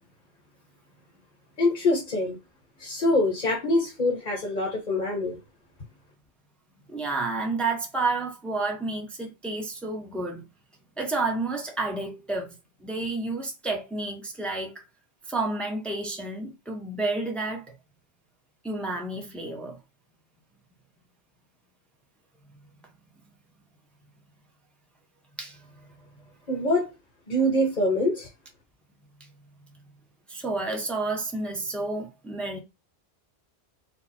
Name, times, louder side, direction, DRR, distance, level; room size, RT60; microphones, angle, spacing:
voice 1, 1.6-2.4 2.8-5.4 26.5-26.9 27.3-28.3, left 1 dB, 45° left, 1.3 m, -24 dB
voice 2, 6.9-10.4 11.0-12.5 12.8-14.7 15.3-17.7 18.6-19.8 25.4-25.6 30.3-32.6, right 3 dB, ahead, 0.9 m, -30 dB
4.6 x 2.3 x 4.3 m
omnidirectional pair, 1.1 m